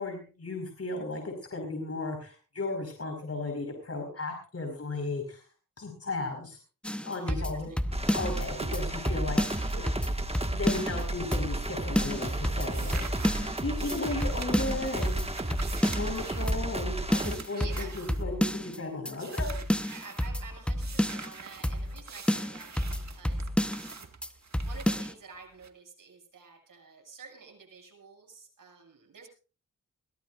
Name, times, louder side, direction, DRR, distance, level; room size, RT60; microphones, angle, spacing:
voice 1, 0.0-5.4 5.8-6.6 7.0-7.7 8.1-9.4 9.7-10.1 10.5-13.0 13.6-15.2 15.9-17.0 17.2-19.6, left 2 dB, 50° left, 4 dB, 5.2 m, -35 dB
sound 1, 6.8-8.4 8.7-8.8 9.1-11.0 11.3-11.7 12.0-13.6 13.9-14.0 14.2-16.2 16.5-16.8 17.1-18.8 19.1-19.2 19.4-21.3 21.6-22.0 22.3-23.9 24.2-24.3 24.5-25.1, equal, 5° left, 1.1 m, -30 dB
voice 2, 7.2-7.8 13.3-13.6 17.6-18.0 19.9-24.0 24.3-24.4 24.6-29.3, right 5 dB, 85° right, 2 dB, 7.0 m, -49 dB
sound 2, 7.9-17.3, right 2 dB, 20° right, 1.8 m, -33 dB
sound 3, 12.2-18.8 19.1-20.3 20.8-25.7, right 5 dB, 60° right, 2.0 m, -46 dB
22.0 x 17.5 x 2.6 m, 0.36 s
wide cardioid pair, 70°, 32 cm